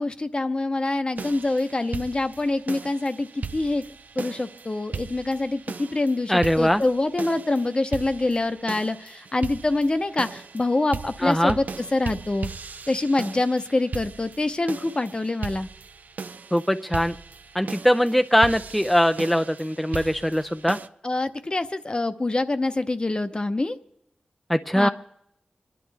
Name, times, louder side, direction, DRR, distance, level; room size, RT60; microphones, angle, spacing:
voice 1, 0.0-3.8 4.2-11.6 11.9-12.5 12.9-15.7 19.9-20.1 21.0-23.8 24.7-24.9, left 2 dB, 35° left, 10 dB, 0.8 m, -25 dB
sound 1, 1.2-20.9, right 5 dB, 75° right, 0.5 m, -38 dB
voice 2, 6.3-6.8 11.2-11.6 16.5-17.1 17.5-20.8 24.5-24.9, equal, ahead, 8 dB, 0.4 m, -21 dB
27.0 x 11.0 x 3.4 m, 0.79 s
wide cardioid pair, 90°, 3 cm